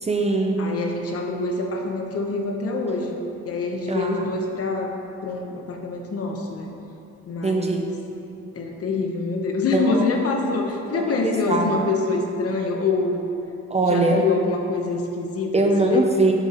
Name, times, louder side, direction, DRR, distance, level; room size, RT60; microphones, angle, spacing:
voice 1, 0.0-0.6 3.9-4.2 7.4-7.8 9.7-10.0 10.9-11.7 13.7-14.2 15.5-16.3, right 3 dB, 20° right, 2 dB, 0.5 m, -22 dB
voice 2, 0.6-3.1 3.5-4.9 5.2-6.7 7.3-7.9 8.5-13.2 13.8-16.0, left 3 dB, 50° left, 2 dB, 0.8 m, -25 dB
7.1 x 3.7 x 4.1 m, 2.9 s
cardioid pair, 90°, 30 cm